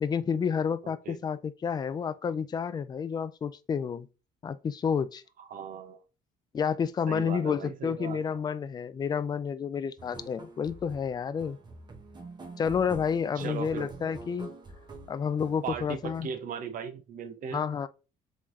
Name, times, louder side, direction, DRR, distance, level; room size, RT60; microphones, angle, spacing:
voice 1, 0.0-4.1 4.4-5.2 6.5-11.6 12.6-14.5 15.1-16.3 17.5-17.9, left 6 dB, 25° left, 0.3 m, -30 dB
voice 2, 0.8-1.2 5.4-6.0 7.1-8.2 13.4-13.9 15.6-17.6, right 7 dB, 55° right, 0.8 m, -38 dB
sound 1, 10.0-16.3, right 3 dB, 25° right, 0.9 m, -46 dB
3.5 x 3.1 x 2.5 m
cardioid pair, 110°, 17 cm